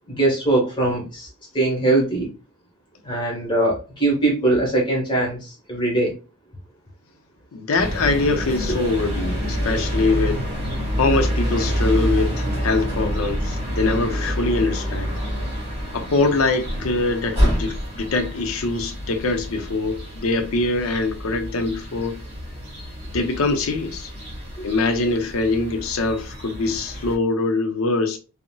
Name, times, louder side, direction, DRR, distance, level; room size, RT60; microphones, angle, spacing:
voice 1, 0.1-1.3 1.5-2.3 3.0-6.1 24.6-24.7, right 2 dB, 20° left, 1.1 m, -21 dB
voice 2, 7.5-10.5 11.0-15.1 15.9-22.2 23.1-24.1 24.6-28.2, left 3 dB, 75° left, 0.5 m, -23 dB
sound 1, 7.8-27.2, equal, 30° right, 1.4 m, -27 dB
3.8 x 2.0 x 2.2 m
head